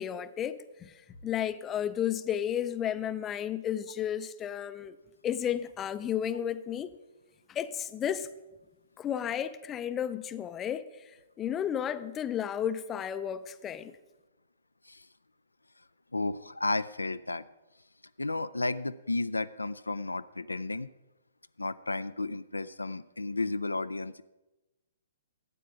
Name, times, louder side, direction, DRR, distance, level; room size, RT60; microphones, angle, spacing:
voice 1, 0.0-5.0 5.2-7.0 7.5-8.3 9.0-13.9, left 9 dB, 20° left, 0.5 m, -33 dB
voice 2, 16.1-17.4 18.2-20.9 21.6-24.2, left 2 dB, 85° left, 0.3 m, -33 dB
12.5 x 8.5 x 4.9 m
figure-of-eight pair, 120°, 0 cm